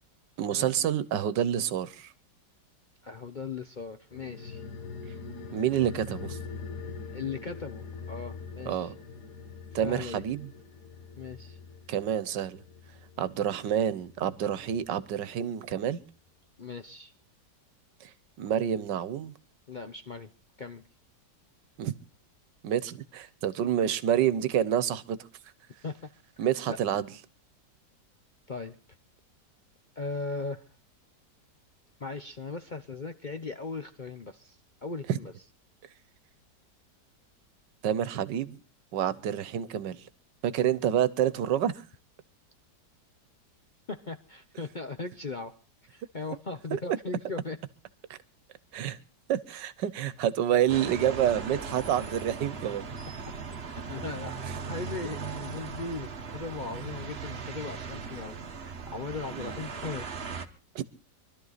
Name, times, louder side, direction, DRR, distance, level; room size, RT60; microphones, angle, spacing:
voice 1, 0.4-2.1 5.5-6.4 8.7-8.9 9.7-10.5 11.9-12.6 13.2-16.0 18.0-18.1 18.4-19.3 21.8-21.9 22.6-25.2 26.4-27.1 35.1-35.2 37.8-38.6 38.9-40.0 40.4-41.7 46.7-46.8 48.1-48.2 48.7-49.0 49.3-52.9 59.3-59.6 60.7-60.8, right 10 dB, 85° right, 1.6 m, -28 dB
voice 2, 3.0-4.6 7.1-8.9 9.8-10.2 11.2-11.6 16.6-17.1 19.7-20.3 20.6-20.8 25.8-26.0 26.7-26.8 28.5-28.8 30.0-30.6 32.0-35.3 43.9-45.6 45.9-47.6 53.2-53.3 53.6-60.1, left 4 dB, 40° left, 0.6 m, -38 dB
sound 1, 4.1-15.0 15.3-15.4, left 5 dB, 65° left, 2.0 m, -43 dB
sound 2, 50.7-60.5, right 5 dB, 40° right, 1.4 m, -38 dB
24.5 x 12.5 x 4.0 m
omnidirectional pair, 1.8 m